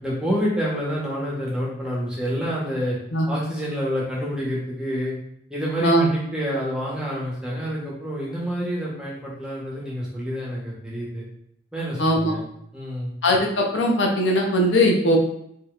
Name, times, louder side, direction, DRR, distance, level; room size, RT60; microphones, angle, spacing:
voice 1, 0.0-3.0 3.3-5.1 5.5-11.2 11.7-12.5 12.7-13.1, equal, 5° right, -5 dB, 1.1 m, -28 dB
voice 2, 12.0-12.3 13.2-15.2, equal, 70° left, 0 dB, 0.7 m, -19 dB
5.0 x 2.8 x 2.5 m, 0.73 s
head